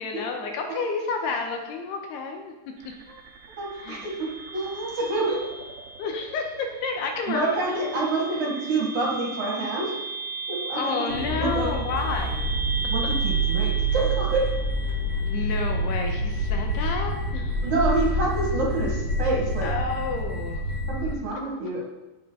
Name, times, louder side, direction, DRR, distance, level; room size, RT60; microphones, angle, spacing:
voice 1, 0.0-2.5 3.8-4.0 6.0-7.8 10.7-12.5 15.3-17.6 19.6-20.6, left 4 dB, 75° left, 3 dB, 2.9 m, -30 dB
sound 1, 2.8-15.8, right 3 dB, 70° right, 2.5 m, -37 dB
voice 2, 3.6-5.4 7.3-9.9 10.5-10.9 11.3-11.7 12.9-14.4 17.6-19.7 20.9-21.8, right 3 dB, 50° right, -3 dB, 2.7 m, -27 dB
sound 2, 11.1-21.1, right 1 dB, 35° left, 3.5 m, -27 dB
17.5 x 7.3 x 4.0 m, 1.1 s
omnidirectional pair, 5.1 m